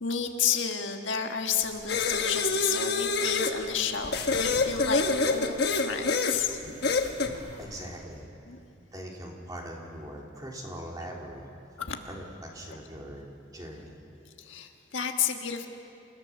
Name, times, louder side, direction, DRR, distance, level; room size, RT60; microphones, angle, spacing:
voice 1, 0.0-5.0 5.3-6.6 8.5-8.6 11.9-12.0 12.7-12.8 14.4-15.7, left 7 dB, 80° left, 4 dB, 1.6 m, -31 dB
sound 1, 1.6-8.0, right 1 dB, 65° right, 6.7 m, -47 dB
sound 2, 1.9-3.6 4.1-6.4 6.8-7.3, left 3 dB, 55° left, 1.3 m, -26 dB
voice 2, 7.6-8.3 8.9-11.5 12.1-13.3 13.5-14.0, right 1 dB, 20° right, -1 dB, 2.8 m, -41 dB
28.0 x 15.5 x 7.1 m, 2.7 s
head